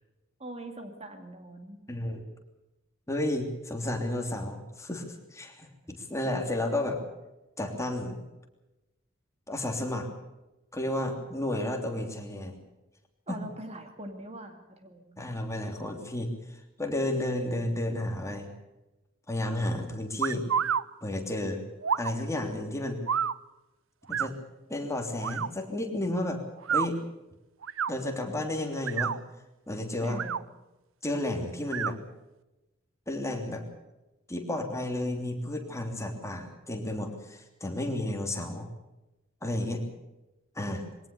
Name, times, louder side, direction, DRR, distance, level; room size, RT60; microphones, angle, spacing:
voice 1, 0.4-1.8 13.3-15.2 30.0-30.4, right 1 dB, 30° right, 6 dB, 2.4 m, -42 dB
voice 2, 1.9-2.2 3.1-7.0 7.6-8.2 9.5-10.1 10.7-12.5 13.3-13.4 15.2-18.5 19.3-20.4 21.0-21.6 22.0-23.0 24.1-24.4 24.7-26.4 26.7-27.0 27.9-29.1 29.7-30.2 31.0-32.0 33.1-33.6 34.3-38.7 39.4-39.8 40.5-40.8, left 1 dB, 15° left, 3 dB, 3.0 m, -32 dB
sound 1, 20.2-20.8 21.8-22.1 23.1-23.4 24.1-24.3 25.2-25.5 26.6-26.9 27.6-27.9 28.7-29.2 30.1-30.4 31.7-31.9, right 7 dB, 70° right, 0.6 m, -29 dB
22.5 x 18.0 x 6.9 m, 1.0 s
head